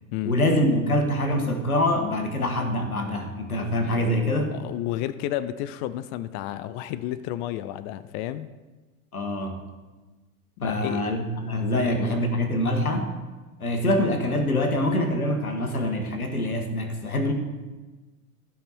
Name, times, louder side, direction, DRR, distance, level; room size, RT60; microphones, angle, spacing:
voice 1, 0.2-4.5 9.1-9.6 10.6-13.1 13.6-17.3, left 1 dB, 85° left, 5 dB, 1.6 m, -25 dB
voice 2, 4.5-8.5 10.6-11.0 11.7-11.9, left 13 dB, 30° left, 14 dB, 0.4 m, -31 dB
15.0 x 5.7 x 4.3 m, 1.2 s
figure-of-eight pair, 90°, 42 cm